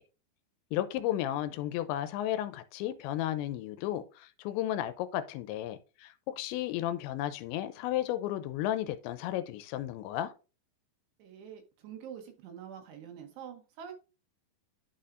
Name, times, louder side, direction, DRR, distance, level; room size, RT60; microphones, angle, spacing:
voice 1, 0.7-10.3, left 13 dB, 85° left, 2.8 m, -33 dB
voice 2, 11.2-13.9, right 8 dB, 75° right, 3.0 m, -46 dB
11.5 x 4.2 x 2.5 m
omnidirectional pair, 5.2 m